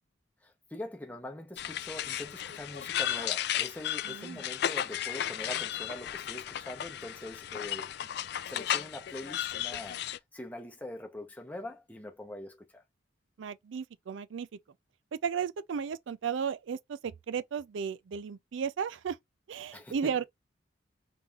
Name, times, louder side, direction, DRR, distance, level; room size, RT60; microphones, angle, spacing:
voice 1, 0.4-8.1 8.5-12.8 19.7-20.3, left 1 dB, 10° left, 0.7 m, -43 dB
sound 1, 1.6-10.2, left 11 dB, 55° left, 0.3 m, -34 dB
voice 2, 4.0-4.4 13.4-14.5 15.2-19.2 19.5-20.2, right 7 dB, 70° right, 0.4 m, -34 dB
5.4 x 3.2 x 2.3 m
head